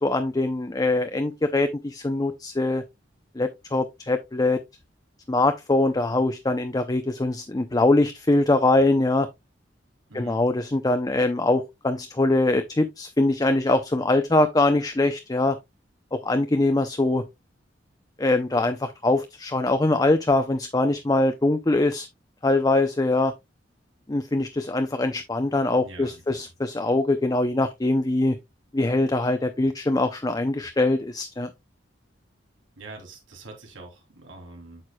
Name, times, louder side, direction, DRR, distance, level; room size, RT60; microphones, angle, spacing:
voice 1, 0.0-2.8 3.4-4.6 5.3-9.3 10.1-15.6 16.1-17.2 18.2-22.1 22.4-23.3 24.1-28.4 28.7-31.5, left 2 dB, 20° left, 0.5 m, -23 dB
voice 2, 10.1-10.5 25.7-26.4 32.8-34.8, right 2 dB, 90° right, 3.0 m, -44 dB
8.7 x 6.6 x 2.2 m
head